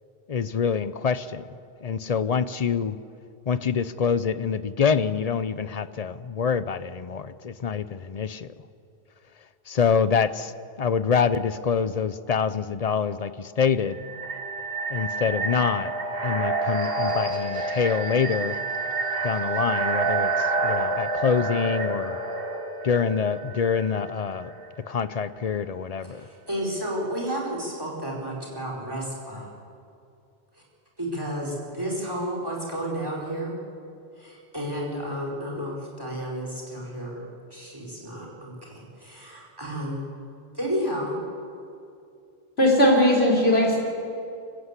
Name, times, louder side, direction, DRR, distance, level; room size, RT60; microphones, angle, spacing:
voice 1, 0.3-1.4 1.8-3.0 3.5-8.5 9.7-10.5 10.8-14.0 14.9-15.9 16.2-18.6 19.2-22.2 22.8-24.5 24.9-26.3, left 6 dB, 45° left, 14 dB, 0.7 m, -25 dB
sound 1, 13.9-24.7, right 3 dB, 65° right, 1.9 m, -28 dB
voice 2, 26.1-29.5 31.0-33.6 34.2-40.1 40.5-41.2, equal, 20° right, -1 dB, 4.4 m, -32 dB
voice 3, 42.6-43.8, equal, 75° left, -3 dB, 5.1 m, -18 dB
25.0 x 15.0 x 8.2 m, 2.5 s
omnidirectional pair, 1.1 m